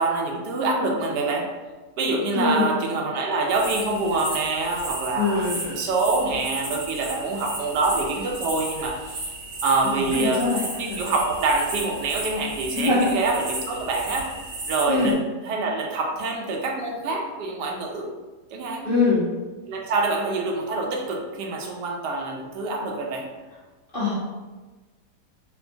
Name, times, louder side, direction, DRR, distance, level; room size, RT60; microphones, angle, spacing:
voice 1, 0.0-1.5 2.0-9.2 9.6-14.3 14.7-15.2 15.4-18.1 18.5-18.9 19.7-23.2, right 3 dB, 85° right, 1 dB, 1.2 m, -26 dB
voice 2, 2.3-2.8 5.2-5.7 9.8-11.0 12.7-13.1 14.9-15.2 18.8-19.3 23.9-24.1, left 3 dB, 50° left, -9 dB, 0.6 m, -23 dB
sound 1, 3.5-15.1, right 2 dB, 55° right, 0.8 m, -34 dB
4.3 x 2.1 x 2.7 m, 1.2 s
omnidirectional pair, 1.8 m